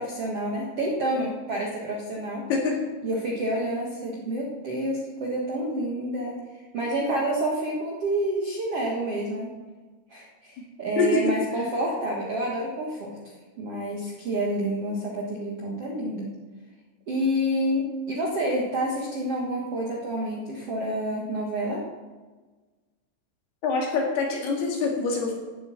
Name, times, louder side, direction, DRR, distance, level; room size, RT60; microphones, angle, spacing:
voice 1, 0.0-2.4 3.0-6.4 6.7-9.5 10.1-13.2 13.6-16.3 17.1-21.8, right 1 dB, 75° right, -3 dB, 1.3 m, -28 dB
voice 2, 2.5-2.8 11.0-11.2 23.6-25.3, left 4 dB, 65° left, 0 dB, 3.8 m, -25 dB
11.5 x 7.9 x 8.4 m, 1.3 s
omnidirectional pair, 5.4 m